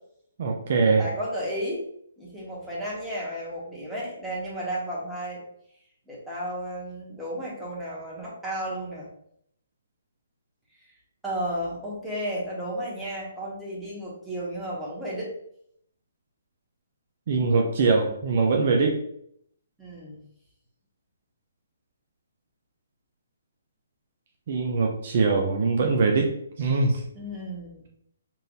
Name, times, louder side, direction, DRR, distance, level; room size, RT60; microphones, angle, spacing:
voice 1, 0.4-1.1 17.3-19.0 24.5-27.0, right 4 dB, 50° right, 1 dB, 0.6 m, -22 dB
voice 2, 1.0-1.8 2.2-5.4 6.1-9.1 11.2-15.3 19.8-20.2 27.1-27.9, equal, 5° right, -7 dB, 1.3 m, -33 dB
5.5 x 2.6 x 2.6 m, 0.70 s
hypercardioid pair, 140°, 0 cm